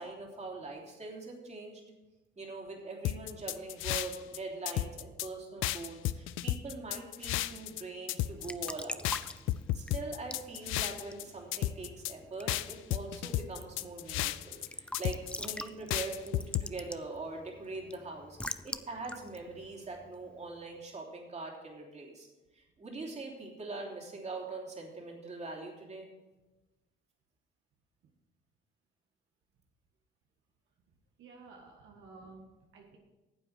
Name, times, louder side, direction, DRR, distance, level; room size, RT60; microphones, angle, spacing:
voice 1, 0.0-1.8 2.4-9.1 9.7-22.3 22.5-26.1, right 3 dB, 35° right, -1 dB, 3.0 m, -42 dB
sound 1, 3.0-4.4 4.7-5.3 5.6-7.8 8.1-8.7 9.0-11.2 11.5-12.1 12.5-14.7 14.9-15.6 15.9-16.7, left 14 dB, 90° left, 0.5 m, -33 dB
Raindrop / Drip / Trickle dribble, 8.2-20.6, left 1 dB, 5° left, 0.5 m, -46 dB
voice 2, 31.2-33.0, right 3 dB, 80° right, 0 dB, 1.7 m, -53 dB
9.6 x 7.8 x 6.5 m, 1.1 s
cardioid pair, 90°, 20 cm